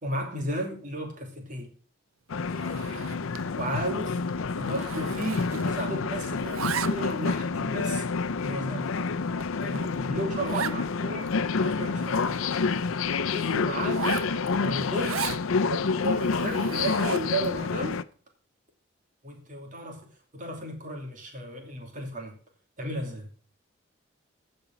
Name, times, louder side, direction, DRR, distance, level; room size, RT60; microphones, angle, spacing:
voice 1, 0.0-1.7 3.6-4.2 4.6-8.0 8.4-9.1 9.6-12.4 13.3-14.1 14.3-15.2 15.7-18.0 19.2-22.4 22.8-23.3, right 1 dB, 40° right, 2.8 m, -34 dB
sound 1, 2.3-18.0, left 4 dB, 90° left, 0.6 m, -28 dB
Zipper (clothing), 2.5-3.5 3.8-4.0 4.3-6.0 6.2-7.3 7.9-8.0 8.6-8.7 9.1-9.2 9.4-9.5 9.7-9.9 10.4-10.8 11.3-11.4 11.6-12.9 13.8-15.4 16.0-17.4, right 7 dB, 90° right, 0.5 m, -36 dB
16.0 x 5.3 x 5.9 m
head